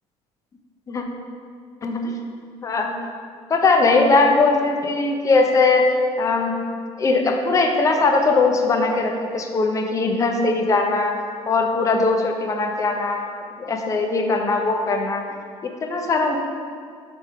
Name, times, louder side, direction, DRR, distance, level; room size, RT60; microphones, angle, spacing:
voice 1, 1.8-2.1 2.6-2.9 3.5-6.5 7.0-11.1 11.5-13.4 13.7-15.2 15.6-16.4, left 3 dB, 25° left, 3 dB, 0.7 m, -20 dB
7.9 x 3.7 x 5.7 m, 2.2 s
cardioid pair, 140°, 12 cm